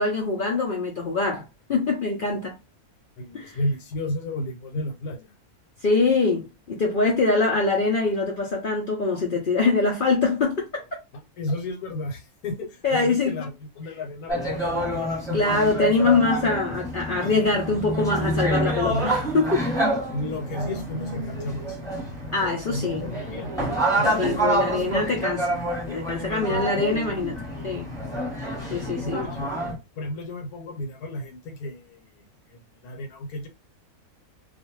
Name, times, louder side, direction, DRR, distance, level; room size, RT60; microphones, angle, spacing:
voice 1, 0.0-1.4 1.7-2.6 3.3-3.6 5.8-10.8 12.8-13.3 15.3-19.7 22.3-23.0 24.2-25.5 25.9-27.3 27.6-27.9 28.7-29.2, left 3 dB, 65° left, 0.5 m, -23 dB
voice 2, 3.2-5.3 11.4-15.0 15.3-15.6 18.9-19.2 20.1-21.8 22.7-23.7 24.0-24.2 26.5-27.2 29.0-29.6 30.0-32.2 32.5-33.5, left 2 dB, 80° left, 1.3 m, -33 dB
sound 1, 14.3-29.7, right 1 dB, 5° left, 1.1 m, -28 dB
2.5 x 2.3 x 3.0 m
omnidirectional pair, 1.6 m